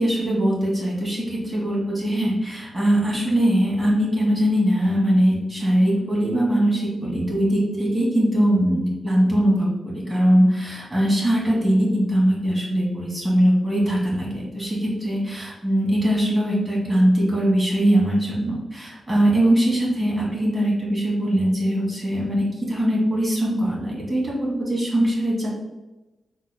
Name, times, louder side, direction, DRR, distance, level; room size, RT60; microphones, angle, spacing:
voice 1, 0.0-25.5, equal, 30° right, -4 dB, 1.4 m, -21 dB
3.8 x 3.1 x 2.2 m, 1.1 s
cardioid pair, 70°, 0 cm